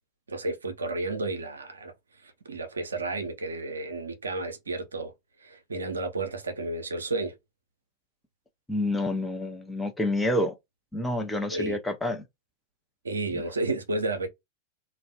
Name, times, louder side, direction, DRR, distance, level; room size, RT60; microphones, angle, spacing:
voice 1, 0.3-1.9 2.2-5.1 5.4-7.3 11.5-11.8 13.0-14.3, right 2 dB, 75° right, 0.5 m, -32 dB
voice 2, 8.7-10.5 10.9-12.2 13.3-13.4, left 1 dB, 5° left, 0.5 m, -28 dB
2.2 x 2.1 x 2.8 m
figure-of-eight pair, 90°, 0 cm